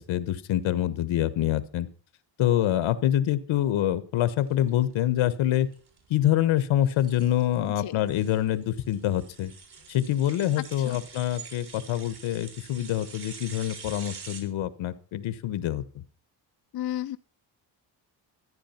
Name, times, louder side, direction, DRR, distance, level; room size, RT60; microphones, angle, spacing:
voice 1, 0.0-1.9 2.4-5.7 6.1-9.5 9.9-16.0, left 12 dB, 85° left, 14 dB, 1.4 m, -26 dB
sound 1, 4.4-14.4, right 5 dB, 55° right, 4.3 m, -46 dB
voice 2, 10.5-11.0 16.7-17.2, left 13 dB, 55° left, 11 dB, 0.6 m, -33 dB
14.0 x 10.0 x 5.8 m, 0.40 s
cardioid pair, 125°, 46 cm